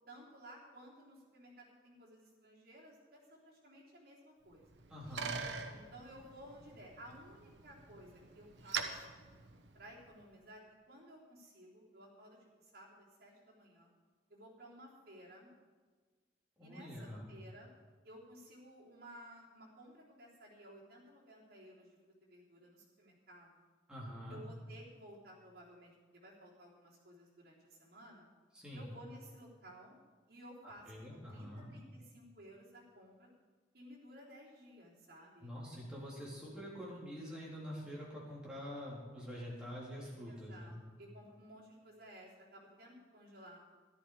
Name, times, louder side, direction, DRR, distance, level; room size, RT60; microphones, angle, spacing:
voice 1, 0.1-4.8 5.7-9.2 9.7-10.6 10.9-12.4 12.6-13.9 14.3-15.5 16.6-17.7 18.0-23.5 24.3-28.3 28.7-30.0 30.3-33.3 33.7-35.6 40.3-43.6, equal, 55° right, -6 dB, 3.5 m, -56 dB
Bicycle, 4.5-10.2, right 5 dB, 75° right, 1.1 m, -45 dB
voice 2, 4.9-5.4 16.6-17.3 23.9-24.4 28.5-28.9 30.9-31.7 35.4-40.7, equal, 5° right, -6 dB, 3.5 m, -46 dB
13.5 x 11.5 x 4.9 m, 1.4 s
head